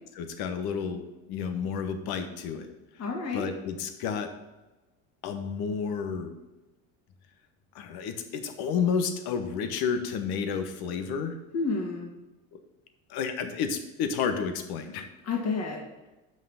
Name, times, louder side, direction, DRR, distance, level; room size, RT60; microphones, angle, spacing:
voice 1, 0.1-2.7 3.3-4.3 5.2-6.3 7.7-11.4 12.5-12.6 13.1-15.1, left 6 dB, 65° left, 7 dB, 1.3 m, -31 dB
voice 2, 3.0-3.5 11.5-12.1 15.2-16.1, left 4 dB, 40° left, 0 dB, 2.0 m, -30 dB
6.1 x 5.6 x 7.1 m, 1.1 s
supercardioid pair, 90°, 40 cm